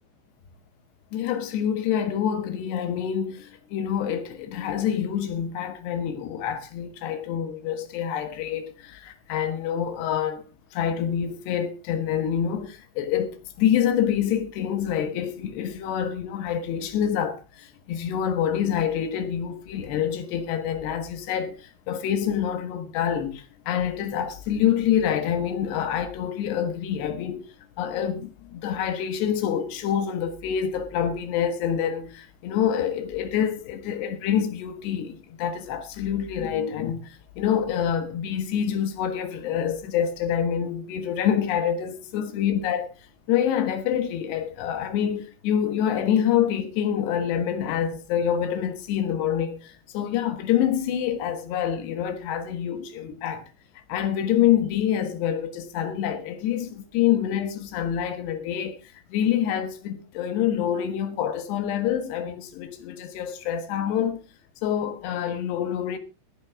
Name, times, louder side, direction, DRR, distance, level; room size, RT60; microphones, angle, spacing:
voice 1, 1.1-10.4 10.7-27.5 27.8-42.9 43.3-53.4 53.9-64.2 64.6-66.0, left 9 dB, 65° left, 3.3 m, -26 dB
18.0 x 10.5 x 3.7 m
omnidirectional pair, 5.6 m